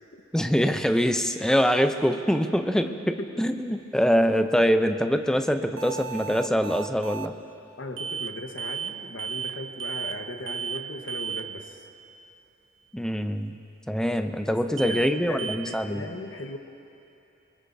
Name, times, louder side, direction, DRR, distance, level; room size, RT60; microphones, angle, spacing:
voice 1, 0.3-7.3 12.9-13.5 13.9-16.0, equal, 5° left, 7 dB, 0.5 m, -24 dB
voice 2, 2.8-3.4 7.8-11.9 14.5-16.6, left 2 dB, 70° left, 4 dB, 1.2 m, -38 dB
sound 1, 5.8-7.3 8.0-8.3 8.6-8.9 9.2-9.5 9.8-10.2 10.5-10.8 11.1-11.4 14.8-15.1 15.4-15.6, right 7 dB, 80° right, 0.6 m, -33 dB
24.5 x 21.5 x 2.7 m, 2.7 s
head